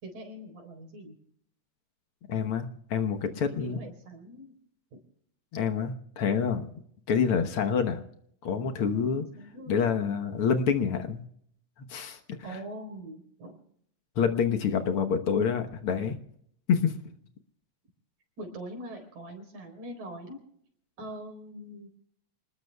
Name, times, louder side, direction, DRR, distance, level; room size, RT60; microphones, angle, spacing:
voice 1, 0.0-1.2 3.5-4.6 4.9-5.0 8.9-9.9 12.4-13.6 18.4-20.4 21.0-21.9, right 1 dB, 90° right, 4 dB, 5.5 m, -43 dB
voice 2, 2.3-3.8 5.5-6.7 7.1-8.0 8.4-9.2 9.7-11.2 11.9-12.6 14.2-16.2 16.7-16.9, left 6 dB, 55° left, 7 dB, 1.7 m, -27 dB
29.0 x 20.0 x 2.3 m, 0.67 s
omnidirectional pair, 3.4 m